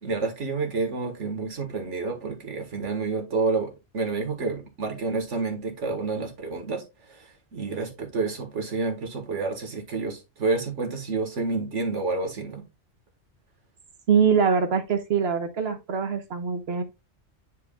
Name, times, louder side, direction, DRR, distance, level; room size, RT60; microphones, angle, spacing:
voice 1, 0.0-12.7, right 3 dB, 90° right, 1.9 m, -29 dB
voice 2, 14.1-16.8, right 6 dB, 60° right, 1.2 m, -23 dB
9.4 x 4.6 x 2.3 m
omnidirectional pair, 1.2 m